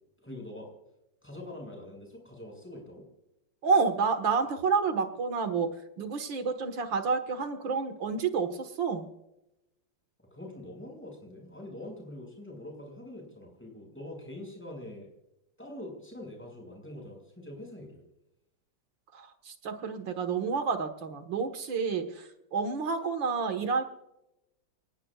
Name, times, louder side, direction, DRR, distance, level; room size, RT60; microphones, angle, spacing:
voice 1, 0.2-0.7 1.2-3.1 10.3-15.1 15.6-18.0, left 1 dB, 5° left, 0 dB, 6.3 m, -44 dB
voice 2, 3.6-9.1 19.1-23.8, right 5 dB, 75° right, 7 dB, 2.3 m, -29 dB
29.5 x 18.5 x 2.5 m, 0.89 s
omnidirectional pair, 2.1 m